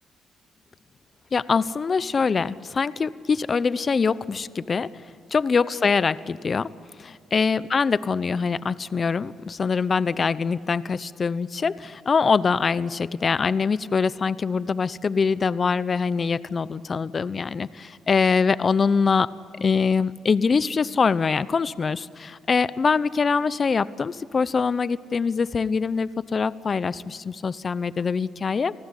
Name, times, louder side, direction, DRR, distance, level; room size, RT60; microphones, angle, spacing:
voice 1, 1.3-4.9 5.3-6.7 7.0-19.3 19.6-28.7, left 5 dB, 40° left, 17 dB, 0.8 m, -23 dB
29.5 x 19.5 x 9.9 m, 2.2 s
cardioid pair, 90°, 0 cm